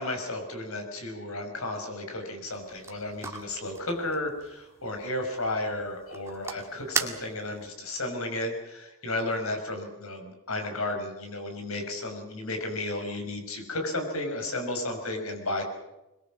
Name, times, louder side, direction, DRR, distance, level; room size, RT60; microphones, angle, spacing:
voice 1, 0.0-15.6, left 2 dB, 85° left, 4 dB, 5.9 m, -33 dB
sound 1, 2.5-7.7, right 4 dB, 15° right, 2.0 m, -38 dB
23.0 x 22.0 x 7.5 m, 0.99 s
head